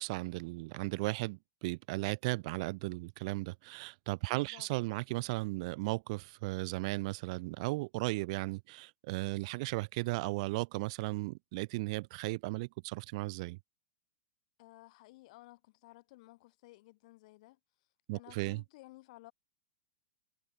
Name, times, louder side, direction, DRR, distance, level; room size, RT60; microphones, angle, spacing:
voice 1, 0.0-13.6 18.1-18.6, right 24 dB, 40° right, 0.8 m, -36 dB
voice 2, 4.3-4.7 14.6-17.6 18.1-19.3, left 20 dB, 45° left, 5.4 m, -56 dB
supercardioid pair, 165°, 5 cm